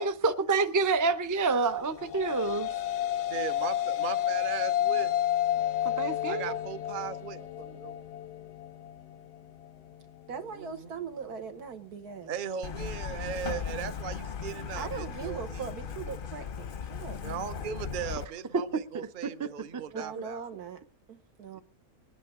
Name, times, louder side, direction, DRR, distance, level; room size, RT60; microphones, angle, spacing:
voice 1, 0.0-2.7 5.8-6.6 18.5-19.8, right 4 dB, 30° right, 0.3 m, -28 dB
sound 1, 1.8-10.4, left 11 dB, 90° left, 1.4 m, -31 dB
voice 2, 3.2-5.1 6.3-7.9 10.6-10.7 12.3-15.6 17.2-20.4, right 8 dB, 45° right, 0.7 m, -38 dB
voice 3, 10.3-12.3 14.8-17.2 19.8-20.8 21.1-21.6, right 6 dB, 80° right, 1.8 m, -40 dB
Truck, 12.6-18.2, left 7 dB, 50° left, 0.7 m, -37 dB
21.5 x 10.0 x 3.7 m
omnidirectional pair, 1.6 m